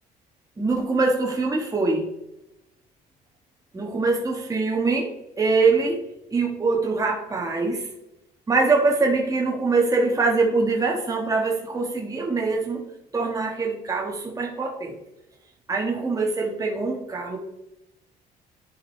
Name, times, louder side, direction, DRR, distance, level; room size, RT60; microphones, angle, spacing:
voice 1, 0.6-2.0 3.7-5.1 5.4-6.0 6.3-7.9 8.5-12.8 13.1-14.9 15.7-17.4, right 3 dB, 20° right, -1 dB, 1.5 m, -23 dB
10.5 x 5.2 x 3.3 m, 0.89 s
cardioid pair, 110°, 17 cm